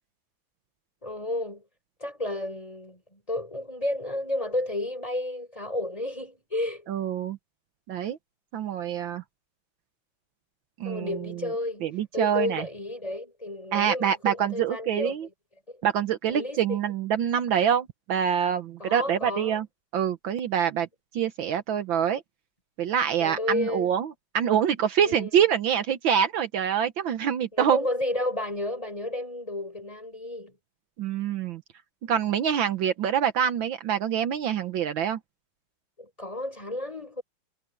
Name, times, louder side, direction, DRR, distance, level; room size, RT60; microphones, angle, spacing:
voice 1, 1.0-1.6 2.0-6.9 10.8-11.9 12.1-15.2 15.7-15.8 16.3-16.8 18.8-19.6 23.2-23.9 25.0-25.3 27.5-30.6 36.0-37.2, left 1 dB, 15° left, 6.6 m, -32 dB
voice 2, 6.9-7.4 7.9-8.2 8.5-9.2 10.8-11.4 11.8-12.7 13.7-15.3 15.8-19.7 19.9-20.9 21.1-22.2 22.8-27.8 31.0-31.6 32.0-35.2, right 9 dB, 70° right, 1.7 m, -25 dB
omnidirectional pair, 2.3 m